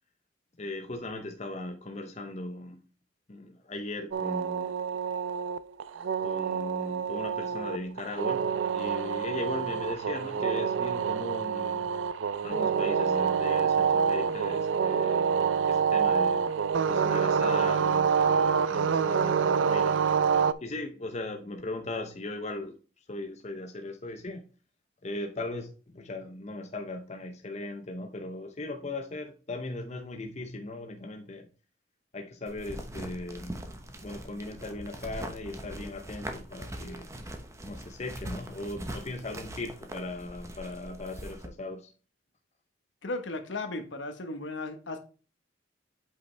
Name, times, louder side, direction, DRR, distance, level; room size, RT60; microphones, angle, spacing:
voice 1, 0.6-2.8 3.3-4.7 6.2-11.9 12.4-16.5 16.8-20.3 20.6-24.5 25.0-31.5 32.1-33.6 33.9-37.1 37.6-41.9, left 2 dB, 35° left, 0.7 m, -38 dB
sound 1, 4.1-20.5, right 6 dB, 80° right, 0.4 m, -27 dB
sound 2, 32.5-41.5, right 1 dB, 15° right, 1.0 m, -42 dB
voice 2, 43.0-45.0, left 2 dB, 75° left, 1.3 m, -35 dB
8.2 x 5.3 x 3.3 m
head